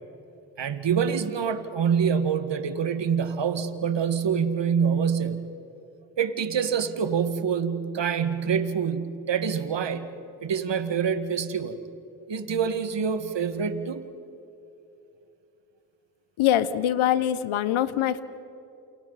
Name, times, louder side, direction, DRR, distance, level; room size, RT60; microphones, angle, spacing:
voice 1, 0.6-5.5 6.2-10.1 10.4-11.8 12.3-14.0, right 7 dB, 65° right, 9 dB, 2.0 m, -26 dB
voice 2, 16.4-18.2, left 11 dB, 85° left, 14 dB, 1.1 m, -23 dB
29.5 x 29.0 x 4.2 m, 2.8 s
supercardioid pair, 40°, 48 cm